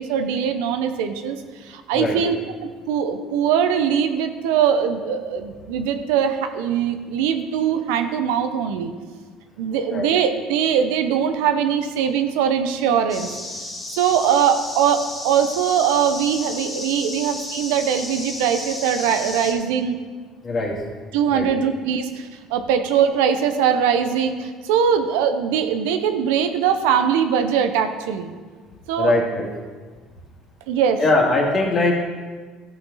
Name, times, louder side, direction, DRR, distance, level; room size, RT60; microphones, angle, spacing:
voice 1, 0.0-2.4 2.9-8.9 9.6-13.3 13.9-20.0 21.1-28.3 28.9-29.2 30.7-31.0, right 8 dB, 85° right, 8 dB, 0.8 m, -21 dB
sound 1, 13.1-19.5, left 2 dB, 20° left, 1.9 m, -33 dB
voice 2, 20.4-20.8 21.3-21.5 29.0-29.5 31.0-31.9, left 2 dB, 35° left, -1 dB, 2.3 m, -21 dB
13.5 x 6.0 x 4.1 m, 1.5 s
supercardioid pair, 105°, 0 cm